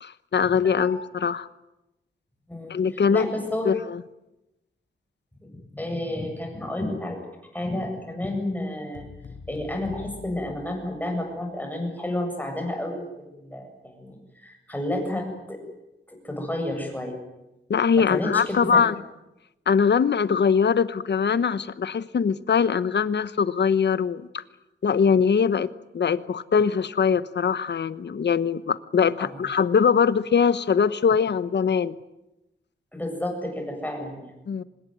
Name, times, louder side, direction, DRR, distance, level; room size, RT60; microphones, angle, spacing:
voice 1, 0.0-1.5 2.7-3.3 3.6-4.0 17.7-18.9 19.7-24.4 24.8-25.7 25.9-31.9 34.5-34.6, left 6 dB, 60° left, 15 dB, 1.1 m, -22 dB
voice 2, 0.6-1.0 2.5-2.7 3.1-3.7 5.4-7.2 7.5-9.0 9.5-15.6 16.1-17.1 18.0-18.8 29.2-29.3 32.9-34.3, left 1 dB, 10° left, 3 dB, 7.7 m, -31 dB
sound 1, 8.9-11.5, left 5 dB, 75° left, 4.8 m, -44 dB
25.5 x 20.5 x 9.4 m, 0.94 s
wide cardioid pair, 125°, 20 cm